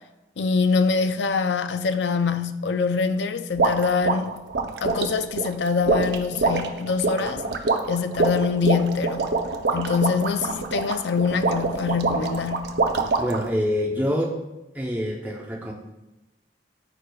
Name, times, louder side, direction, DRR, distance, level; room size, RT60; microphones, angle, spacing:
voice 1, 0.4-4.3 4.8-7.4 7.9-9.4 9.7-12.8, left 5 dB, 90° left, 0.5 m, -24 dB
sound 1, 3.6-13.5, right 3 dB, 75° right, 0.6 m, -25 dB
voice 2, 13.2-14.4 14.7-15.7, equal, 10° right, 0.7 m, -26 dB
13.5 x 4.8 x 2.3 m
head